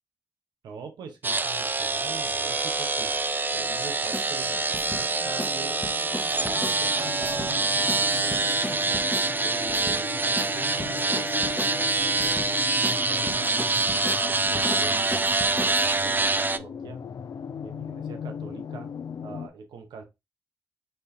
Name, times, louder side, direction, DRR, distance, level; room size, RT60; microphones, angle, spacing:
voice 1, 0.6-3.1 3.5-5.8 6.3-9.0 9.4-12.4 12.9-15.1 15.4-17.0 17.6-18.9 19.2-20.0, right 5 dB, 90° right, 6 dB, 0.8 m, -42 dB
sound 1, 1.2-16.6, right 3 dB, 25° right, 0.4 m, -26 dB
sound 2, 2.6-19.5, left 7 dB, 65° left, 0.5 m, -39 dB
sound 3, 4.1-4.3 4.7-5.0 5.4-5.6 5.8-6.8 7.2-7.6 7.9-8.0 8.3-9.3 9.7-10.0 10.4-10.5 10.8-11.8 12.2-12.5 12.8-13.0 13.3-15.9, left 1 dB, 20° left, 0.9 m, -36 dB
4.3 x 2.7 x 3.2 m, 0.23 s
supercardioid pair, 45°, 7 cm